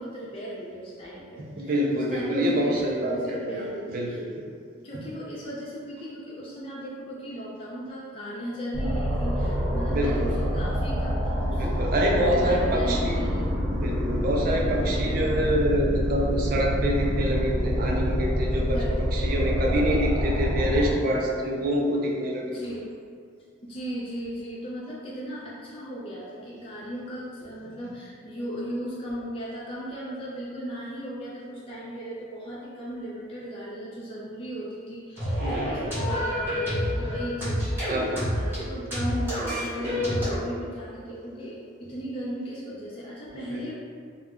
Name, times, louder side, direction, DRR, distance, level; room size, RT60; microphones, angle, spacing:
voice 1, 0.0-4.2 4.8-11.9 12.2-13.6 14.7-15.0 18.7-19.0 22.4-22.9 23.6-43.7, equal, 30° left, -7 dB, 0.4 m, -36 dB
voice 2, 1.4-4.3 9.9-10.4 11.4-13.2 13.7-22.6 35.4-35.9 37.9-38.3 39.8-40.2 43.3-43.6, equal, 45° right, -1 dB, 0.4 m, -26 dB
sound 1, 8.7-20.9, equal, 90° right, 0.7 m, -26 dB
sound 2, 35.2-40.4, equal, 10° right, 0.8 m, -28 dB
2.3 x 2.0 x 3.5 m, 2.2 s
head